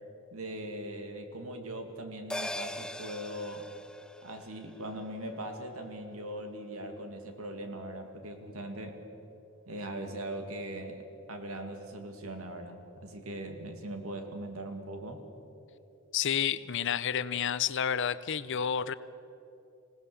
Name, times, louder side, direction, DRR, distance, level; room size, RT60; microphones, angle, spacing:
voice 1, 0.3-3.7 4.2-9.0 9.7-15.2, right 1 dB, 85° right, 5 dB, 2.4 m, -40 dB
sound 1, 2.3-7.0 7.3-7.4, left 1 dB, 5° left, 0.4 m, -43 dB
voice 2, 16.1-18.9, left 8 dB, 60° left, 16 dB, 0.6 m, -30 dB
26.0 x 18.0 x 7.0 m, 2.9 s
head